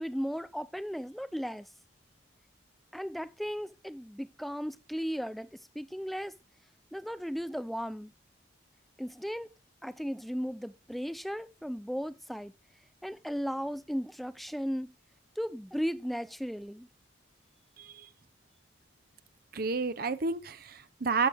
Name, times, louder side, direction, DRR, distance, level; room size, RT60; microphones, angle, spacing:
voice 1, 0.0-1.7 2.9-6.3 6.9-8.1 9.0-9.5 9.8-12.5 13.0-14.9 15.4-16.9, equal, ahead, 0.5 m, -36 dB
voice 2, 17.8-18.1 19.5-21.3, right 4 dB, 50° right, 0.6 m, -31 dB
12.0 x 7.6 x 3.4 m
head